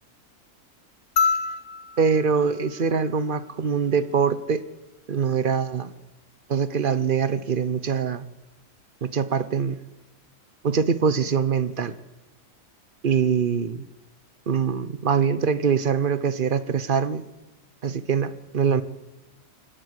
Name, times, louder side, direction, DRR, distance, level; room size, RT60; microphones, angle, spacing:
sound 1, 1.2-3.7 5.3-5.4, left 5 dB, 55° left, 1.3 m, -28 dB
voice 1, 2.0-4.6 5.1-5.9 6.5-8.3 9.0-9.8 10.6-11.9 13.0-13.8 14.5-17.2 17.8-18.8, right 6 dB, 40° right, 14 dB, 0.9 m, -23 dB
25.5 x 13.0 x 8.1 m, 1.0 s
omnidirectional pair, 1.6 m